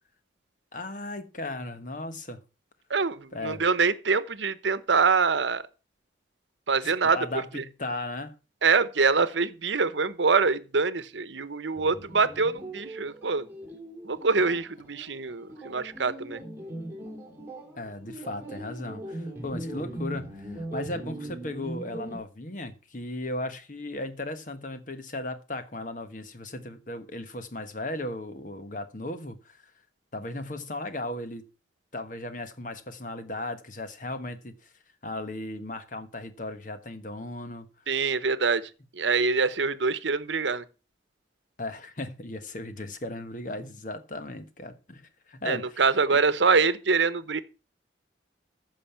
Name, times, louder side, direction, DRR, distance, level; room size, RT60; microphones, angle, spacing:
voice 1, 0.7-2.4 3.3-3.6 6.8-8.3 17.8-29.6 30.1-31.5 31.9-34.7 35.0-37.7 41.6-45.8, left 2 dB, 45° left, 1.3 m, -36 dB
voice 2, 2.9-5.6 6.7-7.2 7.5-7.6 8.6-13.5 14.0-16.4 37.9-40.6 45.4-47.4, right 4 dB, 80° right, 0.9 m, -25 dB
sound 1, 11.8-22.2, right 1 dB, 15° right, 2.9 m, -40 dB
14.5 x 5.5 x 5.7 m
head